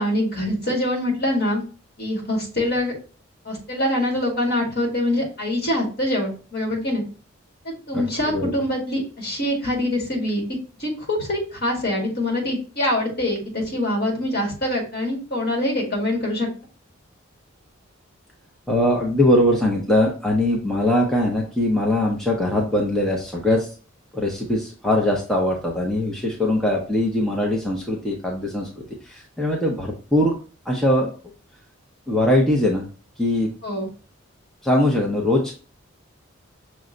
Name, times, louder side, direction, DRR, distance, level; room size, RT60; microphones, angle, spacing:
voice 1, 0.0-1.6 2.0-2.9 3.5-7.0 7.6-10.4 10.8-16.5 33.6-33.9, left 1 dB, 50° left, -1 dB, 1.8 m, -24 dB
voice 2, 7.9-8.5 18.7-23.7 24.1-30.3 30.7-31.1 32.1-32.8 33.2-33.5 34.6-35.4, left 1 dB, 5° left, -2 dB, 0.6 m, -21 dB
6.1 x 2.2 x 3.7 m, 0.37 s
head